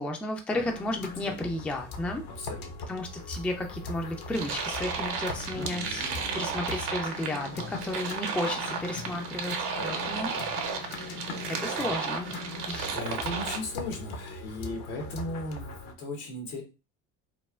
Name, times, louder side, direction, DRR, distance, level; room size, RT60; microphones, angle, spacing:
voice 1, 0.0-2.2 2.9-9.5 9.8-12.3 12.7-13.0, left 1 dB, 5° left, 4 dB, 0.4 m, -33 dB
sound 1, 0.5-15.9, left 3 dB, 55° left, 0.7 m, -41 dB
voice 2, 2.3-2.9 5.5-6.5 9.8-10.2 12.9-16.6, left 2 dB, 75° left, 3 dB, 1.1 m, -38 dB
sound 2, 4.3-13.6, right 5 dB, 60° right, 0.8 m, -34 dB
3.2 x 2.1 x 2.3 m, 0.30 s
hypercardioid pair, 60°, 44 cm